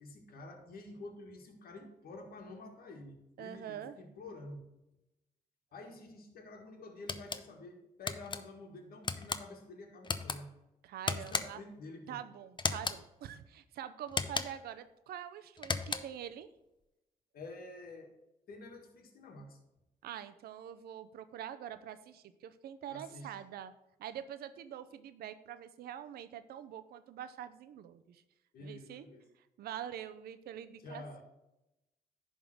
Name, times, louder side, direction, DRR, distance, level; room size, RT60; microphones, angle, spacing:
voice 1, 0.0-4.6 5.7-10.5 11.1-12.2 17.3-18.1 18.5-19.6 22.9-23.3 28.5-29.3 30.8-31.2, left 2 dB, 75° left, 3 dB, 1.7 m, -49 dB
voice 2, 3.4-4.0 10.8-11.6 12.1-16.5 20.0-23.7 24.0-28.2 28.6-29.1 29.4-31.2, right 10 dB, 85° right, 11 dB, 0.6 m, -45 dB
String Roof Switch, 7.1-7.4 8.1-8.4 9.0-9.4 10.0-10.4 11.1-11.7 12.6-13.0 14.1-14.7 15.6-16.2, left 4 dB, 30° left, 0.7 m, -35 dB
10.5 x 3.7 x 6.2 m, 0.93 s
cardioid pair, 75°, 16 cm